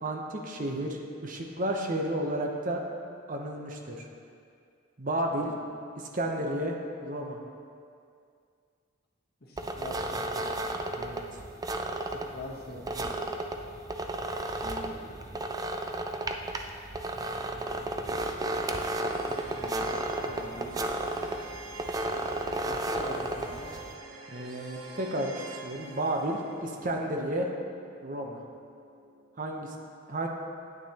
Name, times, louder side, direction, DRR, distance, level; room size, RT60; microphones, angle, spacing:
voice 1, 0.0-2.8 3.3-4.1 5.0-5.5 6.0-6.8 7.0-7.4 11.0-11.4 24.3-27.5 28.0-28.4 29.4-29.7 30.1-30.3, right 1 dB, 40° right, 1 dB, 0.8 m, -32 dB
voice 2, 9.4-10.5 12.0-13.1 14.6-15.4 17.1-20.8 22.7-23.8, left 1 dB, 50° left, -2 dB, 1.2 m, -44 dB
sound 1, 9.6-23.9, right 1 dB, 20° right, 0.3 m, -33 dB
sound 2, 18.6-29.7, right 3 dB, 90° right, 0.7 m, -47 dB
9.1 x 9.1 x 2.9 m, 2.4 s
head